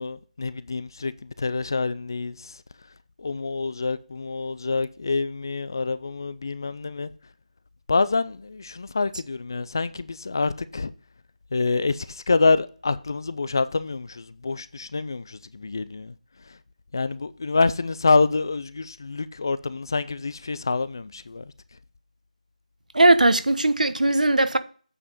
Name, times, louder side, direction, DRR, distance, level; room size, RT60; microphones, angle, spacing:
voice 1, 0.0-2.6 3.2-7.1 7.9-10.9 11.5-16.1 16.9-21.4, left 3 dB, 30° left, 0.4 m, -26 dB
voice 2, 22.9-24.6, right 2 dB, 70° right, 1.1 m, -18 dB
8.6 x 5.3 x 5.2 m
figure-of-eight pair, 170°, 4 cm